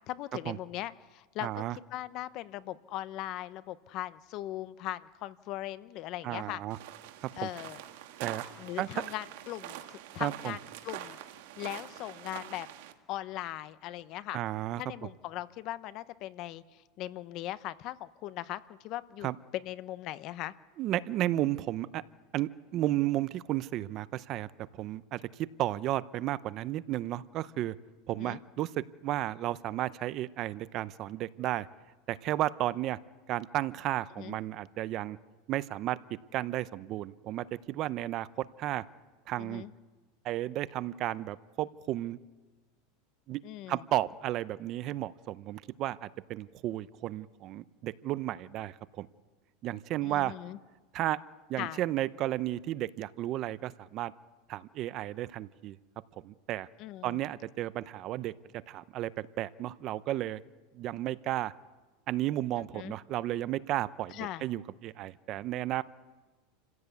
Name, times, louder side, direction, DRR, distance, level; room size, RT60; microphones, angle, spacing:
voice 1, 0.1-6.6 7.4-7.8 8.6-11.2 11.6-12.7 13.1-14.4 14.8-20.5 28.2-28.4 34.2-34.4 39.4-39.7 43.4-43.8 50.0-50.6 51.6-51.8 56.8-57.2 62.7-62.9 64.1-64.4, left 14 dB, 45° left, 15 dB, 0.8 m, -39 dB
voice 2, 1.4-1.8 6.2-6.8 7.2-7.5 8.2-8.4 8.8-9.0 10.2-10.5 14.3-14.8 19.2-19.4 20.8-22.0 22.3-27.8 28.1-31.7 32.1-33.0 33.3-35.2 35.5-36.0 36.3-38.8 39.3-39.6 40.2-42.2 43.3-43.4 43.7-49.1 49.6-50.3 50.9-51.2 51.5-54.1 54.5-55.8 56.2-56.7 57.0-58.3 58.7-60.4 60.7-61.5 62.1-65.8, right 14 dB, 40° right, 17 dB, 0.6 m, -33 dB
sound 1, 6.7-12.9, right 13 dB, 70° right, 1.9 m, -45 dB
28.0 x 15.5 x 8.3 m, 1.3 s
supercardioid pair, 150°, 0 cm